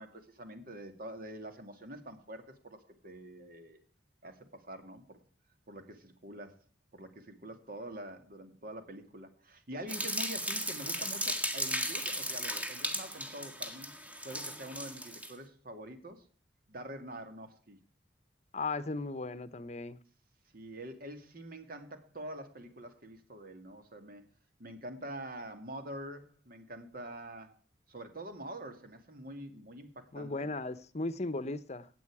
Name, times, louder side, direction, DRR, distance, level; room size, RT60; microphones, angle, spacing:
voice 1, 0.0-3.8 4.2-5.2 5.7-6.6 6.9-13.9 14.2-16.3 16.7-17.8 20.5-24.2 24.6-27.5 27.9-30.5, right 1 dB, 55° right, 2.3 m, -46 dB
sound 1, 9.9-15.3, equal, 10° right, 1.7 m, -36 dB
voice 2, 18.5-20.0 30.1-31.9, left 3 dB, 40° left, 0.9 m, -36 dB
16.5 x 9.2 x 4.8 m
head